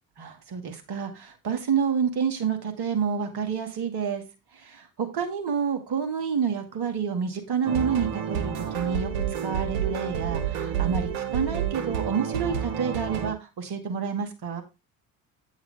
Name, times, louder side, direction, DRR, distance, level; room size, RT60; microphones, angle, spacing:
voice 1, 0.2-4.2 4.6-9.1 9.4-14.6, right 6 dB, 50° right, 6 dB, 2.3 m, -28 dB
sound 1, 7.6-13.3, right 8 dB, 70° right, 1.7 m, -29 dB
8.9 x 7.1 x 3.5 m, 0.25 s
figure-of-eight pair, 55°, 48 cm